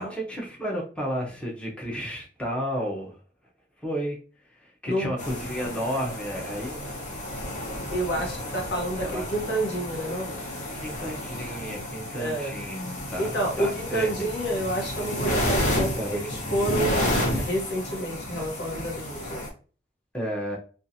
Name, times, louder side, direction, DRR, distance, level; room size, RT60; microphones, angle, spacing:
voice 1, 0.1-3.2 3.8-4.2 4.6-6.8 8.2-8.7 9.0-9.2 10.7-14.3 15.9-16.6 20.1-20.6, equal, 5° left, -3 dB, 0.6 m, -32 dB
sound 1, 5.2-19.5, left 1 dB, 45° left, 0.9 m, -31 dB
voice 2, 7.9-10.3 12.2-12.5 13.2-19.4, right 1 dB, 75° left, 0 dB, 1.0 m, -29 dB
2.7 x 2.3 x 2.6 m, 0.39 s
head